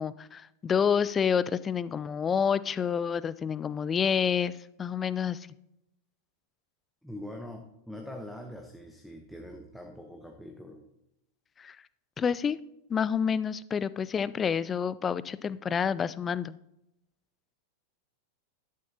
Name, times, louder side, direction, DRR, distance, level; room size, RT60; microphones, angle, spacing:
voice 1, 0.0-4.5 4.8-5.5 11.6-11.8 12.2-12.6 12.9-16.6, left 7 dB, 20° left, 18 dB, 0.4 m, -28 dB
voice 2, 7.0-10.8, left 1 dB, ahead, 2 dB, 1.0 m, -43 dB
12.0 x 11.0 x 2.9 m, 0.84 s
figure-of-eight pair, 90°, 0 cm